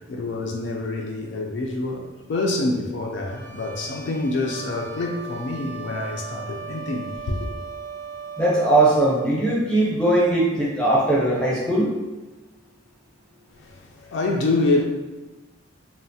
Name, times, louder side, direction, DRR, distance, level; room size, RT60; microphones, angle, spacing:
voice 1, 0.0-7.5 13.6-14.8, left 2 dB, 60° left, 0.3 m, -26 dB
sound 1, 3.2-9.3, right 5 dB, 35° right, 0.5 m, -38 dB
voice 2, 8.4-11.9, right 2 dB, 5° left, 0.6 m, -20 dB
3.1 x 2.0 x 2.6 m
head